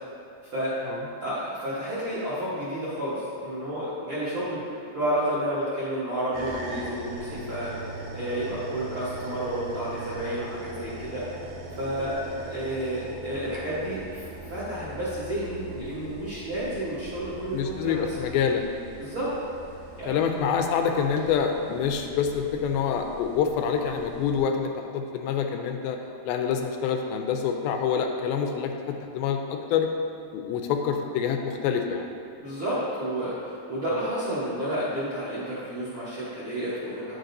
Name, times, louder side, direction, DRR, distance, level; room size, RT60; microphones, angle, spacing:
voice 1, 1.2-4.6 4.9-7.7 8.1-11.2 11.8-18.2 19.0-19.3 20.0-20.2 32.4-37.1, right 1 dB, 60° right, -12 dB, 1.4 m, -31 dB
sound 1, 6.3-24.4, right 2 dB, 85° right, 1.6 m, -40 dB
voice 2, 17.5-18.6 20.1-26.0 26.3-29.9 30.3-32.1, left 7 dB, 85° left, 4 dB, 2.4 m, -26 dB
9.1 x 6.3 x 2.7 m, 2.5 s
omnidirectional pair, 4.3 m